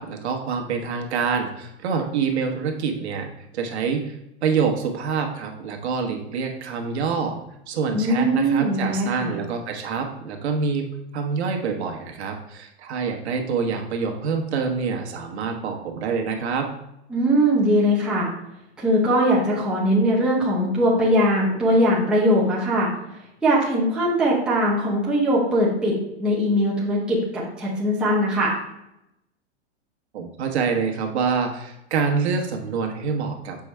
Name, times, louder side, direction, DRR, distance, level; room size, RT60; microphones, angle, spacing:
voice 1, 0.0-7.4 7.7-16.7 30.1-33.6, right 5 dB, 70° right, 2 dB, 1.2 m, -26 dB
voice 2, 7.9-9.3 17.1-18.3 18.8-22.9 23.4-28.5, equal, ahead, -6 dB, 0.8 m, -21 dB
6.8 x 4.8 x 3.3 m, 0.85 s
supercardioid pair, 170°, 34 cm